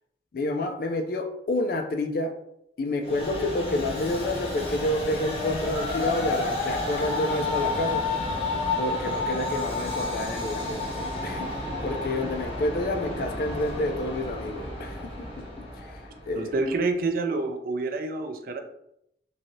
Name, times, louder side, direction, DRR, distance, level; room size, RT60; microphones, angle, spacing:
voice 1, 0.3-2.3 2.8-8.0 8.8-15.3 15.8-16.6, left 1 dB, 55° left, 5 dB, 0.3 m, -29 dB
Train, 3.0-16.5, left 2 dB, 30° left, 0.8 m, -31 dB
voice 2, 16.3-18.6, right 3 dB, 55° right, 5 dB, 0.4 m, -28 dB
3.1 x 2.6 x 2.6 m, 0.76 s
head